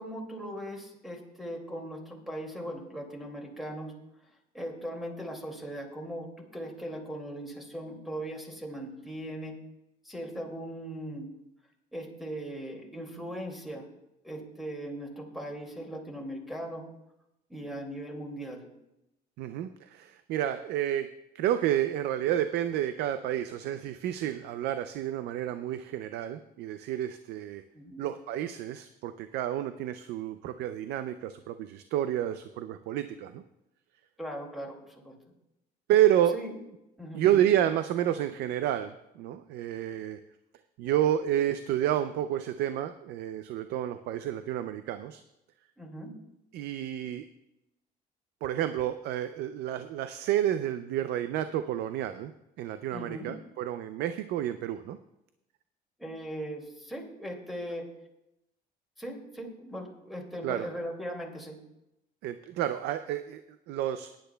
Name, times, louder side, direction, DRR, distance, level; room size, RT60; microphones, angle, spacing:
voice 1, 0.0-3.9 4.5-9.6 10.0-11.3 11.9-13.9 14.2-16.9 17.5-18.7 27.7-28.0 34.2-35.2 36.3-36.6 37.0-37.4 45.8-46.1 52.9-53.3 56.0-57.9 59.0-61.6, equal, ahead, 1 dB, 2.2 m, -39 dB
voice 2, 19.4-27.6 28.0-33.4 35.9-36.4 37.1-40.2 40.8-45.2 46.5-47.3 48.4-52.3 52.6-55.0 60.4-60.7 62.2-63.4 63.7-64.1, right 11 dB, 80° right, 11 dB, 0.4 m, -30 dB
18.0 x 10.0 x 2.2 m, 0.89 s
cardioid pair, 110°, 17 cm